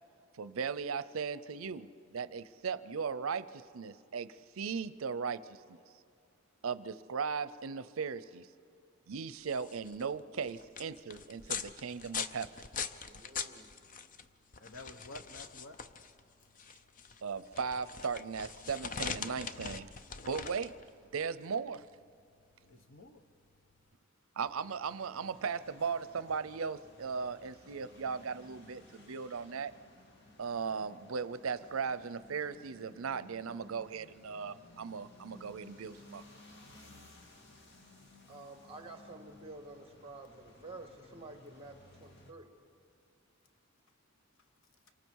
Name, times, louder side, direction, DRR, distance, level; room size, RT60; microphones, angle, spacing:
voice 1, 0.4-5.8 6.6-8.5 9.1-12.5 17.2-19.9 20.3-20.8 21.1-21.8 24.4-29.7 30.4-36.2, right 5 dB, 85° right, 15 dB, 0.6 m, -37 dB
sound 1, 9.3-23.9, left 6 dB, 40° left, 0.6 m, -43 dB
voice 2, 13.0-13.9 38.3-42.5, right 2 dB, 30° right, 6 dB, 1.7 m, -50 dB
voice 3, 14.6-15.8 20.6-20.7 22.6-23.2, left 2 dB, 75° left, 8 dB, 1.3 m, -51 dB
sound 2, 24.5-42.3, left 2 dB, 60° left, 1.9 m, -58 dB
27.5 x 25.0 x 4.7 m, 2.4 s
head